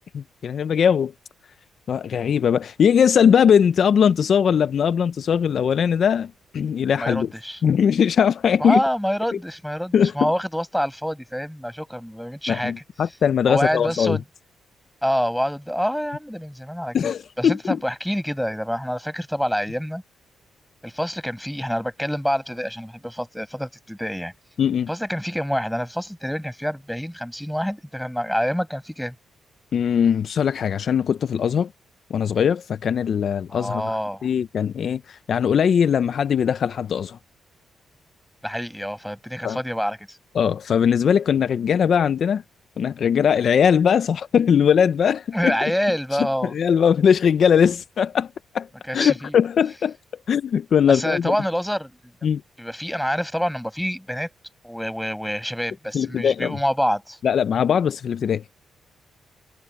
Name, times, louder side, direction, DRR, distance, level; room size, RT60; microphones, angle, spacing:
voice 1, 0.1-1.1 1.9-7.3 7.6-8.8 9.9-10.3 12.5-14.2 16.9-17.8 24.6-24.9 29.7-31.7 32.1-37.2 39.4-39.6 40.3-42.4 42.8-45.7 46.4-48.7 48.9-50.0 50.3-51.3 52.2-52.4 55.9-56.6 57.2-58.4, left 7 dB, 60° left, 0.6 m, -20 dB
voice 2, 7.0-7.6 8.6-12.8 13.5-14.2 15.0-17.1 17.4-20.0 20.8-24.3 24.9-29.2 33.5-34.3 38.4-40.2 45.3-46.5 48.9-49.3 50.9-52.0 52.6-54.3 54.6-57.2, equal, ahead, 7.4 m, -26 dB
cardioid pair, 95°, 0 cm